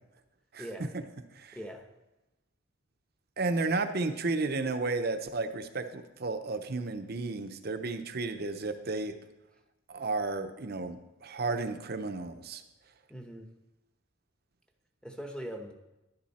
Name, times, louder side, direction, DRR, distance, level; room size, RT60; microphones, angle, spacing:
voice 1, 0.6-0.9 1.5-1.9 13.1-13.5 15.0-15.7, equal, 5° left, 4 dB, 1.0 m, -41 dB
voice 2, 3.4-9.1 9.9-12.6, right 3 dB, 50° right, 8 dB, 0.8 m, -33 dB
11.5 x 10.5 x 4.3 m, 0.98 s
head